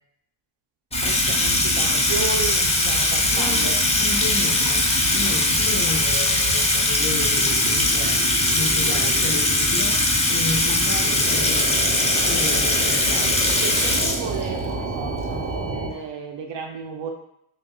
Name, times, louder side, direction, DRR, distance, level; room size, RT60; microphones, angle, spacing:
Water tap faucet / Sink (filling or washing), 0.9-14.7, left 2 dB, 15° left, 0.5 m, -21 dB
sound 1, 0.9-15.9, right 3 dB, 30° right, 0.6 m, -30 dB
voice 1, 1.0-3.8 13.1-17.1, right 6 dB, 60° right, 3 dB, 0.6 m, -33 dB
voice 2, 3.3-11.9 12.2-13.3, left 3 dB, 40° left, -1 dB, 1.0 m, -33 dB
5.0 x 2.3 x 2.2 m, 0.76 s
cardioid pair, 85°, 49 cm